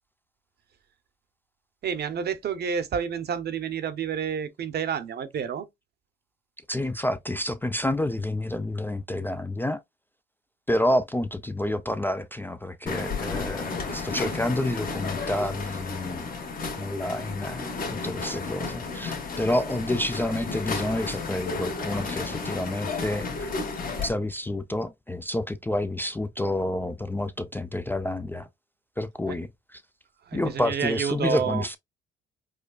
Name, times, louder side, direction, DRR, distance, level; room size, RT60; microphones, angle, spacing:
voice 1, 1.8-5.7 29.3-29.4 30.3-31.7, right 7 dB, 55° right, 0.7 m, -29 dB
voice 2, 6.7-9.8 10.7-16.3 16.8-23.5 24.0-28.5 29.0-29.8 30.3-31.8, left 1 dB, 10° left, 0.3 m, -29 dB
sound 1, 12.9-24.1, left 4 dB, 45° left, 1.3 m, -33 dB
4.9 x 2.2 x 2.3 m
cardioid pair, 90°, 20 cm